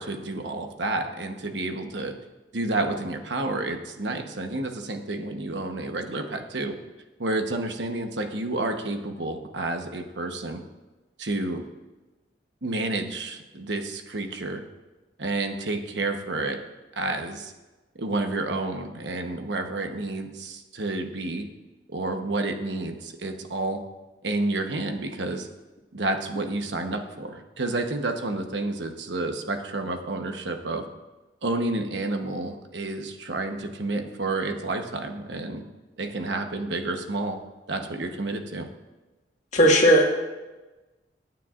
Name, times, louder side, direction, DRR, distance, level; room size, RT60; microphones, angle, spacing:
voice 1, 0.0-2.1 2.5-6.7 7.2-10.6 11.2-11.6 12.6-14.6 15.2-16.6 17.0-17.5 18.0-21.5 21.9-23.8 24.2-25.5 25.9-30.8 31.4-35.6 36.0-37.4 37.7-38.7, right 2 dB, 85° right, 5 dB, 1.1 m, -30 dB
voice 2, 39.5-40.2, equal, 40° left, 0 dB, 1.8 m, -17 dB
22.5 x 9.2 x 2.5 m, 1.2 s
head